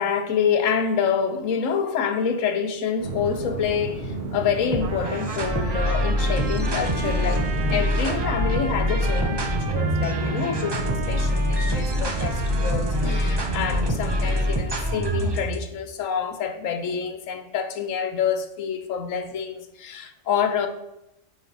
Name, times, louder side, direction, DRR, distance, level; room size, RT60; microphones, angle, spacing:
voice 1, 0.0-20.7, left 7 dB, 90° left, 1.1 m, -27 dB
sound 1, 3.0-14.4, right 2 dB, 50° right, 1.4 m, -32 dB
sound 2, 4.7-15.6, equal, 25° right, 0.6 m, -25 dB
Trumpet, 4.8-13.8, right 4 dB, 85° right, 1.3 m, -36 dB
9.2 x 4.3 x 3.9 m
omnidirectional pair, 1.3 m